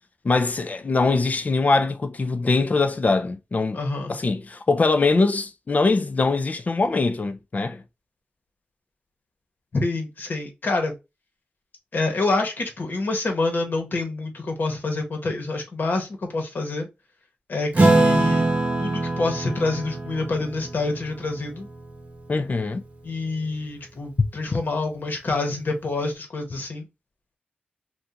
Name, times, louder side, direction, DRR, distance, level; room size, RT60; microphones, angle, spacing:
voice 1, 0.2-3.8 4.1-7.8 22.3-22.8 24.2-24.3, left 3 dB, 45° left, 0.5 m, -22 dB
voice 2, 3.7-4.1 9.7-10.9 11.9-16.9 17.5-18.5 18.8-21.7 23.0-26.9, left 3 dB, 65° left, 1.1 m, -27 dB
Acoustic guitar / Strum, 17.7-22.6, right 2 dB, 40° right, 0.9 m, -23 dB
2.8 x 2.4 x 3.6 m
cardioid pair, 65°, 4 cm